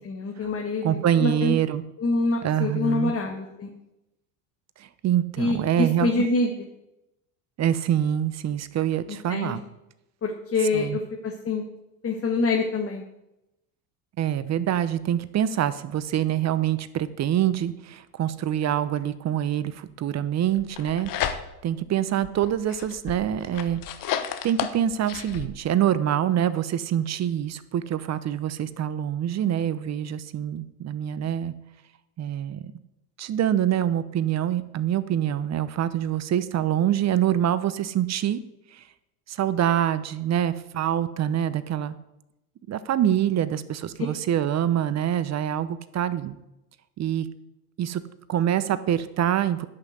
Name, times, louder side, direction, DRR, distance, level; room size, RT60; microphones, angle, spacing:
voice 1, 0.0-1.6 2.0-3.7 5.4-6.5 9.3-9.5 10.2-11.6 12.0-13.0, left 3 dB, 30° left, 1 dB, 1.7 m, -26 dB
voice 2, 0.8-1.8 2.4-3.1 4.8-6.3 7.6-9.6 10.7-11.0 14.2-21.4 21.6-23.8 24.1-24.2 24.4-31.5 32.2-32.7 33.2-38.4 38.7-38.8 39.3-41.9 42.7-46.4 47.0-47.3 47.8-48.0 48.3-49.7, right 10 dB, 35° right, 15 dB, 0.8 m, -25 dB
sound 1, 20.6-21.8 22.2-25.5, left 9 dB, 45° left, 1.2 m, -32 dB
10.5 x 5.8 x 8.1 m, 0.90 s
hypercardioid pair, 85°, 45 cm